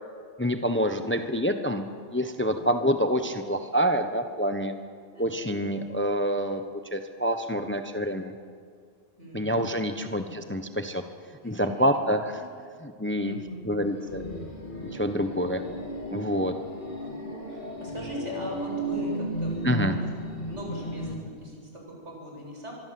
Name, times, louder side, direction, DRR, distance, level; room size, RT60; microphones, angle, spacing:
voice 1, 0.4-1.8 2.1-4.7 5.2-8.3 9.3-11.0 11.4-12.2 12.8-13.4 13.7-14.2 14.9-15.6 16.1-16.5 19.6-20.0, equal, 10° left, 7 dB, 1.1 m, -27 dB
voice 2, 2.4-2.9 5.1-5.5 9.2-9.7 11.4-11.9 12.3-12.4 13.2-13.7 17.0-17.2 17.5-22.7, equal, 65° right, -1 dB, 7.7 m, -41 dB
sound 1, 13.8-21.1, equal, 40° left, 3.7 m, -34 dB
25.0 x 23.5 x 7.8 m, 2.1 s
omnidirectional pair, 1.3 m